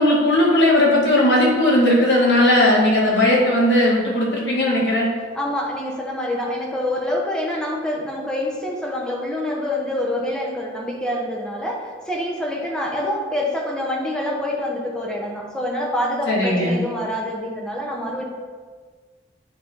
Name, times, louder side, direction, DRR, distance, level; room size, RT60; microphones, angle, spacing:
voice 1, 0.0-5.1 16.3-16.8, left 1 dB, 65° left, -5 dB, 2.0 m, -17 dB
voice 2, 5.3-18.2, left 1 dB, 5° left, -2 dB, 1.0 m, -26 dB
9.1 x 3.6 x 4.4 m, 1.5 s
head